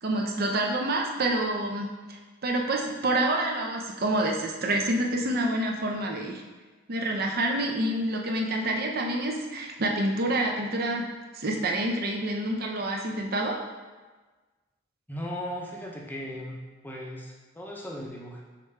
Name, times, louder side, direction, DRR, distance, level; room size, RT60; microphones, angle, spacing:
voice 1, 0.0-6.4 6.9-11.1 11.3-13.6, right 1 dB, 50° right, 1 dB, 0.6 m, -27 dB
voice 2, 15.1-18.4, equal, 10° left, -2 dB, 0.6 m, -37 dB
5.1 x 3.1 x 3.3 m, 1.3 s
head